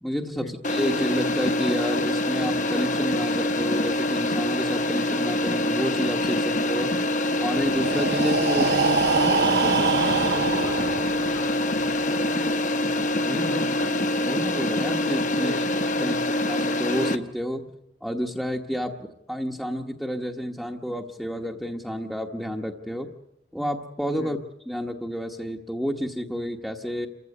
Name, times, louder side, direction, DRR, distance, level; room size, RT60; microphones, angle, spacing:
voice 1, 0.0-6.9 7.4-8.7 13.2-13.6 13.9-14.0 14.2-15.5 16.0-17.6 18.0-23.1 23.5-24.4 24.7-27.1, equal, ahead, 1 dB, 1.1 m, -30 dB
sound 1, 0.6-17.2, left 1 dB, 45° left, 1.2 m, -25 dB
Breathing, 7.7-11.5, right 5 dB, 75° right, 0.8 m, -25 dB
voice 2, 8.6-12.9 13.4-13.9 15.3-16.3 24.1-24.3, left 2 dB, 70° left, 5 dB, 1.6 m, -36 dB
28.5 x 15.0 x 9.7 m, 0.81 s
head